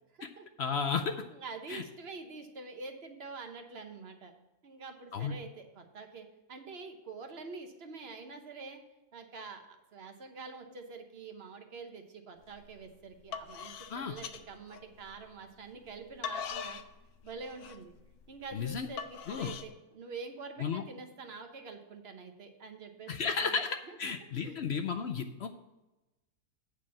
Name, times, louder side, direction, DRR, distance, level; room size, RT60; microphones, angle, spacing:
voice 1, 0.6-1.2 1.7-1.8 5.1-5.4 13.9-14.2 18.5-18.9 19.3-19.5 20.6-20.8 23.1-25.5, left 6 dB, 60° left, 6 dB, 0.7 m, -33 dB
voice 2, 1.3-4.3 4.6-8.8 9.1-16.8 17.2-17.9 18.3-23.1 23.4-23.6 23.9-24.0 24.4-24.6, right 4 dB, 45° right, 6 dB, 1.2 m, -46 dB
sound 1, 12.5-12.8 13.1-15.2 15.8-19.7, left 7 dB, 85° left, 1.2 m, -42 dB
8.9 x 4.7 x 7.3 m, 1.0 s
omnidirectional pair, 1.5 m